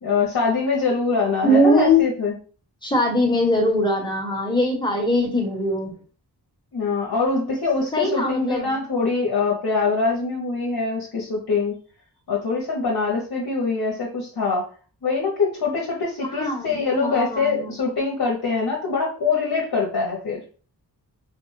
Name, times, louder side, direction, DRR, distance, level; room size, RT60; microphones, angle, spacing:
voice 1, 0.0-2.3 6.7-11.8 12.3-14.7 15.0-20.4, left 4 dB, 65° left, -2 dB, 0.8 m, -23 dB
voice 2, 1.4-2.0 2.8-5.9 7.9-8.8 16.3-17.8, left 1 dB, 10° left, 0 dB, 1.1 m, -21 dB
3.4 x 2.1 x 3.2 m, 0.39 s
wide cardioid pair, 60°, 39 cm